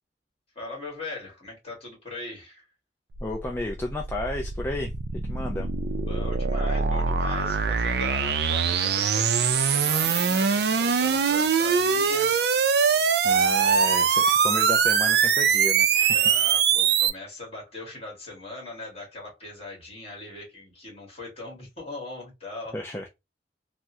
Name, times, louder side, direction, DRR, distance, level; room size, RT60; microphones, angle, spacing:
voice 1, 0.6-2.7 6.0-12.3 13.6-14.1 16.1-22.8, left 2 dB, 35° left, 1.8 m, -40 dB
voice 2, 3.2-4.9 5.3-5.7 13.2-16.3 22.7-23.1, left 1 dB, 15° left, 0.4 m, -32 dB
sound 1, 3.2-17.1, right 6 dB, 65° right, 0.4 m, -23 dB
3.5 x 2.1 x 2.7 m
head